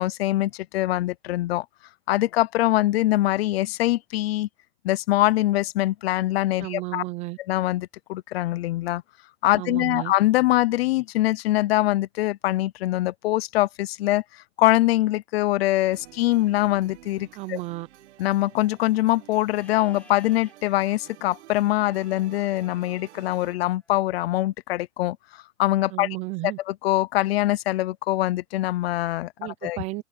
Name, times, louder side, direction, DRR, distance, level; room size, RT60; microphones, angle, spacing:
voice 1, 0.0-1.7 2.1-4.5 4.8-7.0 7.5-9.0 9.4-17.6 18.2-26.1 26.7-29.8, left 16 dB, 55° left, 0.6 m, -23 dB
voice 2, 6.6-7.4 9.6-10.1 17.3-17.9 25.9-26.6 29.4-30.0, right 20 dB, 20° right, 0.5 m, -33 dB
sound 1, 15.8-23.6, right 15 dB, 65° right, 1.9 m, -50 dB
Livestock farm animals working animals, 19.5-20.5 23.4-24.3, left 2 dB, 5° left, 4.9 m, -54 dB
supercardioid pair, 165°, 37 cm